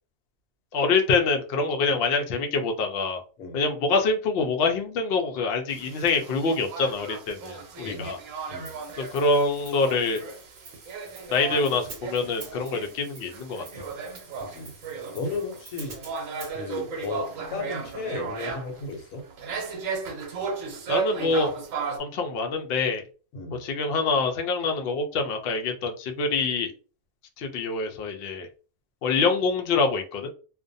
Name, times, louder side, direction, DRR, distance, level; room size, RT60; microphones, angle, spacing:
voice 1, 0.7-3.2 3.5-8.2 9.0-10.2 11.3-13.9 20.9-21.5 22.0-23.0 23.5-26.7 27.4-28.5 29.0-30.3, left 4 dB, 65° left, 4 dB, 0.6 m, -25 dB
sound 1, 5.7-22.0, right 5 dB, 80° right, 1.0 m, -35 dB
Hi-hat, 8.6-16.5, right 4 dB, 50° right, 0.8 m, -48 dB
voice 2, 14.4-14.7 15.1-16.0 16.5-17.2 17.5-19.2 23.3-23.6, left 3 dB, 90° left, 4 dB, 1.1 m, -34 dB
2.5 x 2.2 x 2.5 m, 0.36 s
omnidirectional pair, 1.4 m